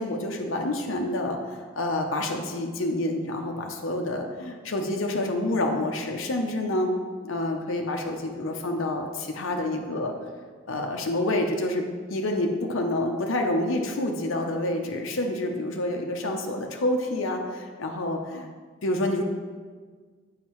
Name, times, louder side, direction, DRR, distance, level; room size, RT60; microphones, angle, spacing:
voice 1, 0.0-6.9 7.2-10.1 10.7-18.5 18.8-19.2, left 1 dB, 70° left, 2 dB, 0.6 m, -28 dB
7.3 x 5.6 x 3.1 m, 1.5 s
head